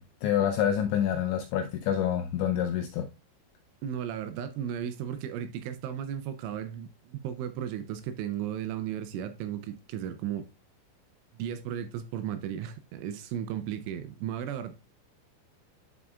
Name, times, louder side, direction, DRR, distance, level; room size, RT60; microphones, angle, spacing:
voice 1, 0.0-3.1, left 9 dB, 85° left, 2.6 m, -27 dB
voice 2, 3.8-10.5 11.3-14.7, right 9 dB, 80° right, 2.9 m, -35 dB
11.0 x 4.9 x 2.3 m
omnidirectional pair, 5.9 m